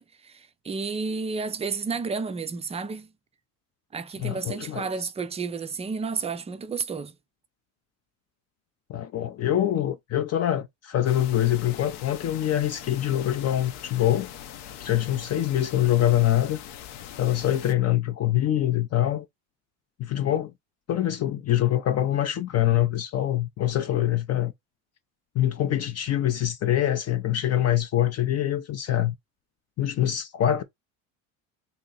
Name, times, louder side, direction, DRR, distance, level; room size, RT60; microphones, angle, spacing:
voice 1, 0.0-3.1 3.9-7.2, right 4 dB, 15° right, 0.4 m, -31 dB
voice 2, 4.2-4.9 8.9-14.3 14.8-16.6 17.2-19.3 20.0-20.5 20.9-24.5 25.4-29.1 29.8-30.6, left 12 dB, 40° left, 0.5 m, -24 dB
sound 1, 11.0-17.7, left 10 dB, 70° left, 0.8 m, -42 dB
2.9 x 2.7 x 3.8 m
supercardioid pair, 105°, 41 cm